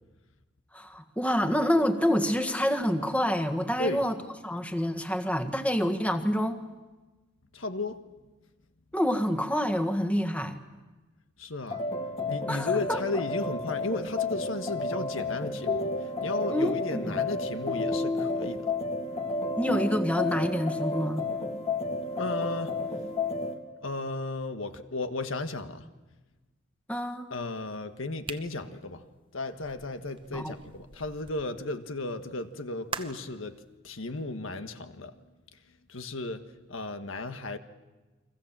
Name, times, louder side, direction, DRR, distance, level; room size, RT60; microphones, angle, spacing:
voice 1, 0.7-4.2 4.4-6.6 8.9-10.6 12.5-13.0 16.5-17.2 19.6-21.2 26.9-27.2 30.3-30.5, equal, 5° left, 7 dB, 1.6 m, -27 dB
voice 2, 7.5-8.0 11.4-11.8 12.3-18.7 22.2-22.7 23.8-25.9 27.3-29.0 29.3-33.6 33.8-35.3 35.9-36.4 36.7-37.6, left 2 dB, 85° left, 8 dB, 1.6 m, -34 dB
sound 1, 11.7-23.6, left 3 dB, 35° left, 2.2 m, -31 dB
sound 2, 28.2-31.5 32.9-33.4, right 5 dB, 25° right, 1.0 m, -42 dB
30.0 x 23.5 x 7.5 m, 1.2 s
head